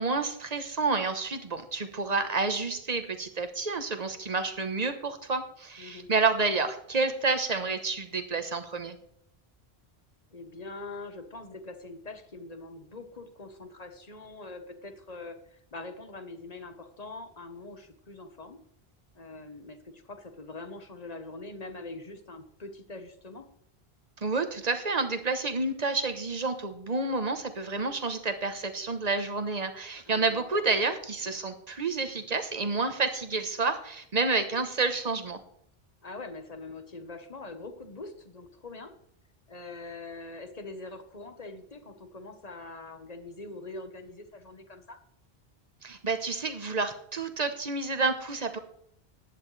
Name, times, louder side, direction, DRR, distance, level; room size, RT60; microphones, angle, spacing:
voice 1, 0.0-9.0 24.2-35.4 45.8-48.6, right 3 dB, 40° right, 8 dB, 1.1 m, -29 dB
voice 2, 5.8-6.1 10.3-18.6 19.1-23.4 30.0-30.4 36.0-38.9 39.5-45.0, left 3 dB, 40° left, 7 dB, 1.2 m, -43 dB
15.0 x 10.5 x 3.3 m, 0.70 s
omnidirectional pair, 1.1 m